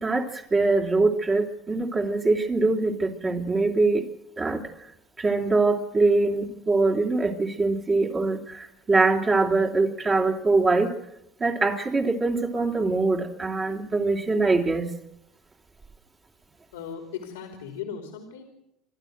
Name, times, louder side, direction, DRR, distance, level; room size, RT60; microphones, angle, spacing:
voice 1, 0.0-4.0 4.4-4.6 5.2-10.9 11.4-14.9, right 3 dB, 30° right, 0 dB, 3.1 m, -23 dB
voice 2, 16.7-18.4, left 7 dB, 90° left, 3 dB, 2.9 m, -37 dB
28.5 x 12.0 x 8.0 m, 0.84 s
hypercardioid pair, 85°, 0 cm